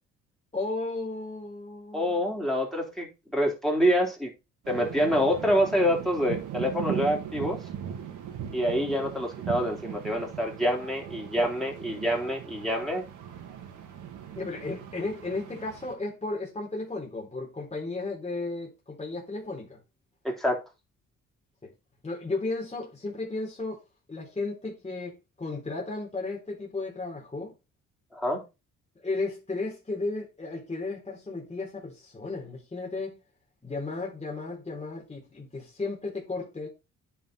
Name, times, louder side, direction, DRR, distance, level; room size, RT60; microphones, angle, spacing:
voice 1, 0.5-2.2 14.4-19.8 21.6-21.7 22.0-23.8 24.1-27.5 29.0-33.2 33.6-36.7, left 3 dB, 20° left, 3.9 m, -34 dB
voice 2, 1.9-4.3 4.7-7.6 8.5-13.1 20.2-20.6 28.1-28.4, equal, ahead, 3.5 m, -26 dB
sound 1, 4.6-15.9, right 9 dB, 85° right, 1.9 m, -39 dB
10.0 x 4.4 x 4.1 m
cardioid pair, 90°, 30 cm